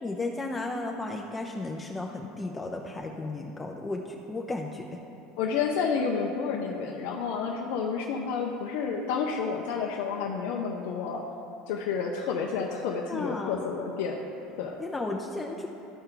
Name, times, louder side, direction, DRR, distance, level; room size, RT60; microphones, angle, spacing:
voice 1, 0.0-5.0 12.7-12.8 13.1-13.6 14.8-15.7, left 2 dB, 20° left, 1 dB, 0.5 m, -34 dB
voice 2, 5.4-11.2 11.7-14.2 14.6-14.8, left 6 dB, 75° left, 0 dB, 0.6 m, -30 dB
12.5 x 4.4 x 3.8 m, 2.8 s
supercardioid pair, 95°, 0 cm